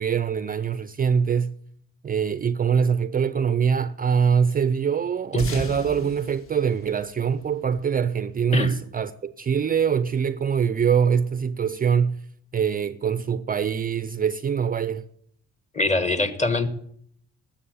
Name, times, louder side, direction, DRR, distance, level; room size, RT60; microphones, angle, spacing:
voice 1, 0.0-1.5 2.0-12.2 12.5-15.0, right 7 dB, 30° right, 0.5 m, -23 dB
sound 1, 5.4-8.2, left 3 dB, 50° left, 1.9 m, -36 dB
voice 2, 15.7-16.7, left 2 dB, 25° left, 1.3 m, -23 dB
12.5 x 7.3 x 8.9 m
cardioid pair, 120°, 29 cm